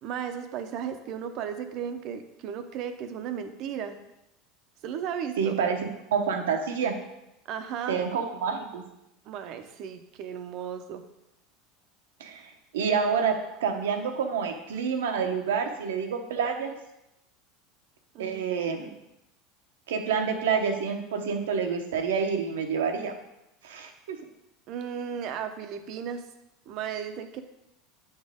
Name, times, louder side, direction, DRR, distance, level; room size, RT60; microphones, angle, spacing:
voice 1, 0.0-4.0 4.8-5.6 7.5-8.0 9.3-11.0 18.1-18.4 24.7-26.2 26.7-27.4, right 8 dB, 55° right, 8 dB, 0.7 m, -35 dB
voice 2, 5.4-6.9 7.9-8.8 12.2-16.7 18.2-18.9 19.9-23.1 23.6-24.2, right 6 dB, 85° right, 5 dB, 0.9 m, -28 dB
8.7 x 4.4 x 3.6 m, 0.87 s
hypercardioid pair, 100°, 0 cm